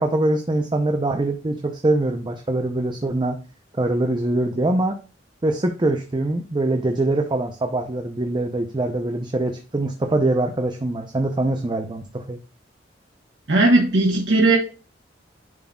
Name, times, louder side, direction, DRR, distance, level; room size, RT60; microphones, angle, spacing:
voice 1, 0.0-3.4 3.7-5.0 5.4-12.4, right 2 dB, 25° right, 4 dB, 0.6 m, -23 dB
voice 2, 13.5-14.6, right 2 dB, 80° right, -1 dB, 1.2 m, -17 dB
10.5 x 3.9 x 2.3 m, 0.35 s
head